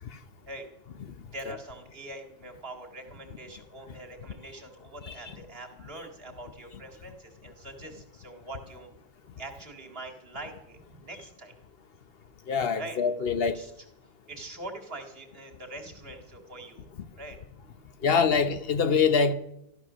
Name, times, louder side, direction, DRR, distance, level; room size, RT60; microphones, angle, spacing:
voice 1, 1.2-9.0 9.4-11.6 12.8-13.0 13.5-13.9 14.3-16.9 17.2-17.4 17.7-18.1, right 2 dB, 70° right, 2.3 m, -43 dB
voice 2, 5.0-5.4 12.5-13.6 18.0-19.3, left 5 dB, 65° left, 1.1 m, -24 dB
13.0 x 13.0 x 6.2 m
omnidirectional pair, 1.1 m